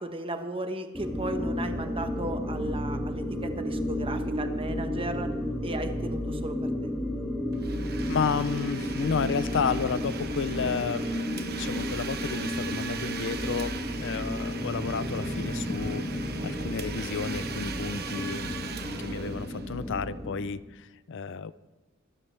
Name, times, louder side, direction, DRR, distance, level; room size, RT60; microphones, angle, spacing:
voice 1, 0.0-5.3 5.6-6.9, right 1 dB, 25° right, 7 dB, 1.2 m, -35 dB
sound 1, 0.9-20.3, left 1 dB, 5° right, 2.1 m, -33 dB
Domestic sounds home sounds, 7.5-20.1, right 6 dB, 50° right, 1.1 m, -40 dB
voice 2, 8.1-16.0 16.4-21.5, left 6 dB, 60° left, 16 dB, 0.5 m, -32 dB
sound 2, 14.5-20.5, left 1 dB, 25° left, 2.3 m, -40 dB
24.5 x 12.5 x 3.4 m, 1.2 s
head